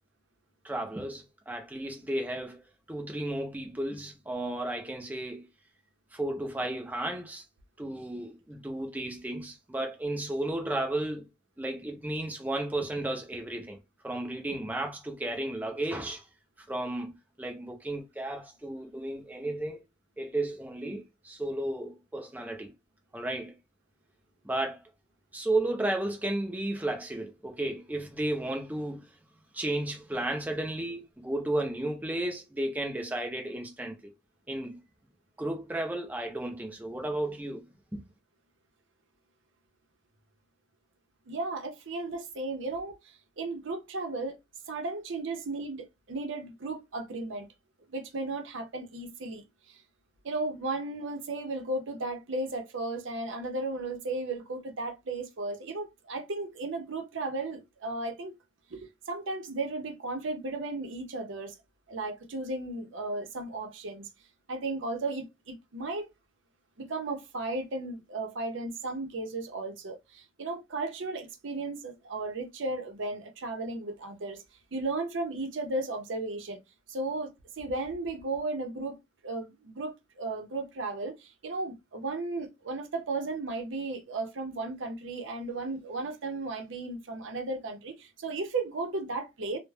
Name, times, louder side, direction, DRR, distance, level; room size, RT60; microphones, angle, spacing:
voice 1, 0.6-2.6 2.9-5.5 6.1-7.4 7.8-11.3 11.6-13.8 14.0-16.3 16.7-19.8 20.2-22.7 23.1-23.5 24.4-24.8 25.3-29.1 29.5-34.1 34.5-34.8 35.4-38.1, right 1 dB, 10° right, 0.4 m, -33 dB
voice 2, 41.3-42.9 43.4-44.4 44.7-47.5 47.9-49.8 50.2-58.3 58.7-61.5 61.9-64.1 64.5-66.1 66.8-74.4 74.7-76.6 76.9-79.0 79.2-89.6, right 2 dB, 90° right, 0.6 m, -35 dB
2.3 x 2.1 x 3.1 m
head